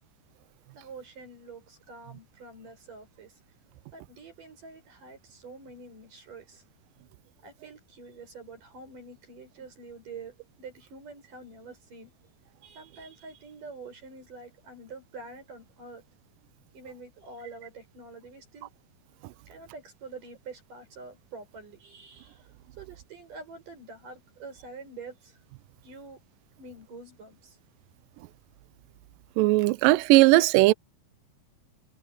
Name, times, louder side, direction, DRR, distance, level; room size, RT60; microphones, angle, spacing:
voice 1, 0.7-3.3 3.9-6.6 7.4-12.1 12.6-16.0 16.7-18.7 19.5-22.4 22.8-25.3 25.8-26.2 26.6-27.6, right 3 dB, 55° right, 8.5 m, -46 dB
voice 2, 29.4-30.7, right 19 dB, 90° right, 2.0 m, -18 dB
omnidirectional pair, 4.5 m